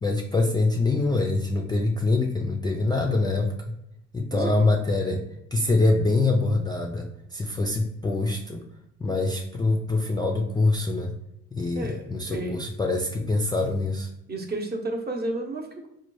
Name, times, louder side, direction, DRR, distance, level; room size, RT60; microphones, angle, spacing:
voice 1, 0.0-3.7 4.1-5.2 5.5-8.6 9.0-11.1 11.5-14.1, left 2 dB, 15° left, 1 dB, 0.3 m, -24 dB
voice 2, 11.7-12.6 14.3-15.9, right 2 dB, 30° right, 2 dB, 0.8 m, -32 dB
4.1 x 2.2 x 3.0 m, 0.81 s
cardioid pair, 90°, 30 cm